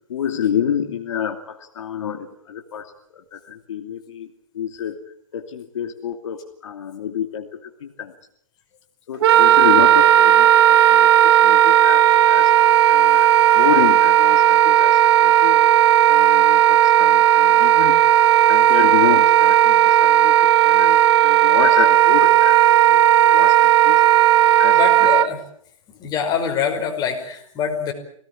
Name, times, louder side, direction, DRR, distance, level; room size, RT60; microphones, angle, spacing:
voice 1, 0.1-4.3 4.5-5.0 5.3-8.1 9.1-12.5 12.9-13.3 13.5-18.0 18.5-23.0 23.3-24.0 24.6-24.8, left 8 dB, 60° left, 4 dB, 2.7 m, -28 dB
Wind instrument woodwind instrument, 9.2-25.3, right 12 dB, 50° right, 1.1 m, -14 dB
voice 2, 24.7-25.4 26.0-27.9, left 7 dB, 20° left, 3 dB, 5.5 m, -24 dB
25.5 x 19.0 x 8.7 m, 0.64 s
hypercardioid pair, 135°, 18 cm